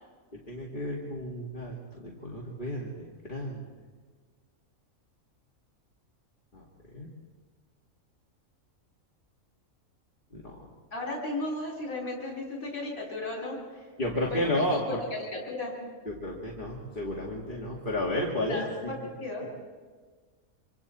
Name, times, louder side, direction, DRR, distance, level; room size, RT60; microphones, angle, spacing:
voice 1, 0.3-1.8 2.0-3.7 6.5-6.6 6.9-7.1 10.3-10.6 14.0-15.0 16.1-19.1, left 1 dB, 35° left, -4 dB, 2.5 m, -32 dB
voice 2, 10.9-13.9 14.3-14.8 15.3-15.8 18.5-18.7 19.2-19.5, left 2 dB, 75° left, -3 dB, 3.9 m, -35 dB
26.5 x 26.0 x 4.3 m, 1.5 s
omnidirectional pair, 1.5 m